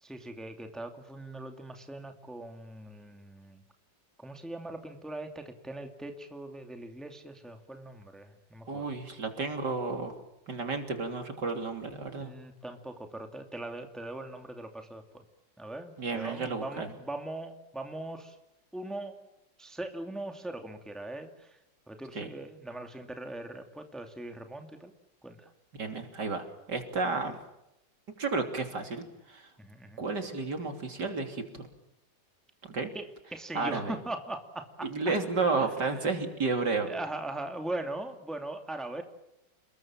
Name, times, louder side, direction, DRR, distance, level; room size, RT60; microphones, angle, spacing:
voice 1, 0.0-3.6 4.2-8.9 12.2-15.2 15.6-18.4 18.7-19.2 19.6-21.6 21.9-24.9 25.2-25.5 29.6-30.0 32.9-33.0 33.3-36.1 36.9-39.0, right 2 dB, ahead, 5 dB, 2.4 m, -40 dB
voice 2, 8.7-10.2 10.5-12.3 16.0-16.9 22.2-22.3 25.8-27.4 28.2-29.5 30.0-31.7 32.6-32.9 33.5-33.9 34.9-36.9, right 3 dB, 65° right, 6 dB, 3.7 m, -32 dB
29.5 x 21.5 x 7.5 m, 0.87 s
omnidirectional pair, 2.0 m